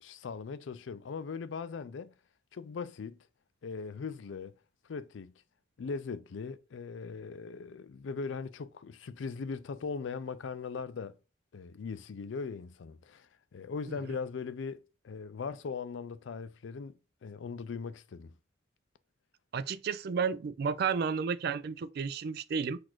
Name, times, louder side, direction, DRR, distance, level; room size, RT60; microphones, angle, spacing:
voice 1, 0.0-2.1 2.5-3.2 3.6-4.5 4.9-5.3 5.8-11.1 11.5-17.0 17.2-18.3, left 5 dB, 80° left, 0.4 m, -39 dB
voice 2, 19.5-22.8, right 6 dB, 55° right, 0.3 m, -32 dB
4.1 x 2.5 x 4.4 m
head